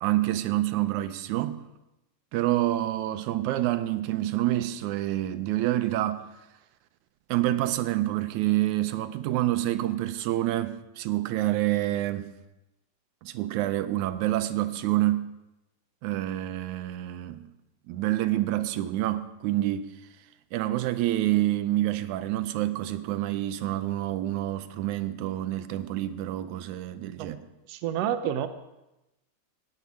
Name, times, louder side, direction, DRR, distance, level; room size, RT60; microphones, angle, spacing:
voice 1, 0.0-1.6 2.3-6.3 7.3-12.3 13.2-15.3 16.0-17.5 17.9-19.9 20.5-27.4, right 15 dB, 90° right, 2.1 m, -27 dB
voice 2, 27.7-28.5, right 10 dB, 70° right, 1.7 m, -28 dB
15.0 x 5.2 x 9.4 m
omnidirectional pair, 3.4 m